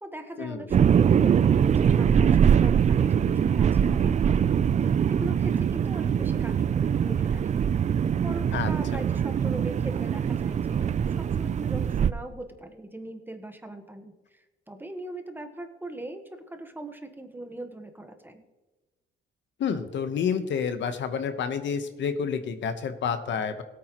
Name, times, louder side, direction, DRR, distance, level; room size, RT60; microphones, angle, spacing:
voice 1, 0.0-7.6 8.2-18.4, right 1 dB, 10° right, 6 dB, 1.2 m, -41 dB
sound 1, 0.7-12.1, right 8 dB, 35° right, 0.4 m, -23 dB
voice 2, 19.6-23.6, left 6 dB, 70° left, 9 dB, 1.0 m, -29 dB
17.0 x 8.7 x 3.0 m, 1.2 s
cardioid pair, 90°, 20 cm